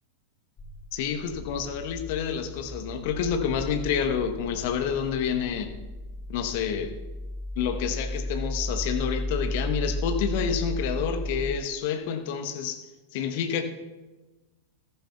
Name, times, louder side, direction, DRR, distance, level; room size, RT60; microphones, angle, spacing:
sound 1, 0.6-11.6, left 1 dB, 25° left, 0.9 m, -34 dB
voice 1, 0.9-5.7 6.3-7.0 7.6-13.6, left 7 dB, 50° left, 7 dB, 1.0 m, -29 dB
14.5 x 14.0 x 2.3 m, 1.2 s
figure-of-eight pair, 90°, 0 cm